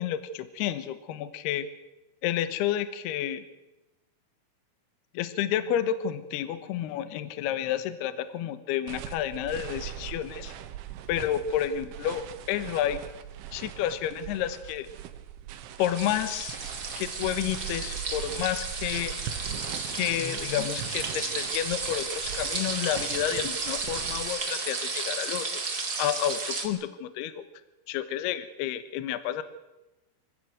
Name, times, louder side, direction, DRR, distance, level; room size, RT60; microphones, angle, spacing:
voice 1, 0.0-1.7 2.2-3.4 5.1-10.5 11.1-13.0 13.5-14.9 15.8-16.6 17.0-19.2 19.9-25.5 26.0-27.4 27.9-29.4, left 10 dB, 70° left, 13 dB, 2.8 m, -30 dB
sound 1, 8.9-24.3, right 10 dB, 75° right, 3.6 m, -41 dB
sound 2, 15.9-26.7, right 4 dB, 30° right, 1.7 m, -33 dB
27.5 x 15.5 x 8.0 m, 1.0 s
omnidirectional pair, 5.9 m